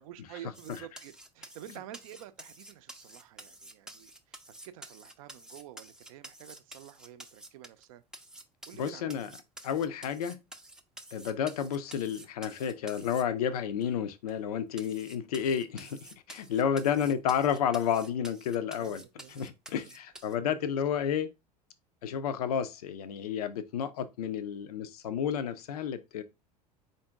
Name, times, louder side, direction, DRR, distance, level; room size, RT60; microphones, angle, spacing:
voice 1, 0.0-8.0 8.7-9.4 16.6-17.1 18.7-19.5 20.3-20.8, right 12 dB, 55° right, 0.5 m, -49 dB
sound 1, 0.5-7.8 8.1-13.2 13.8-13.9 14.3-14.4 14.8-20.4, right 1 dB, 5° right, 0.5 m, -50 dB
voice 2, 8.8-9.3 9.6-10.4 11.1-19.0 19.4-21.3 22.0-26.2, left 8 dB, 65° left, 0.5 m, -31 dB
4.2 x 2.6 x 3.4 m
figure-of-eight pair, 75°, 21 cm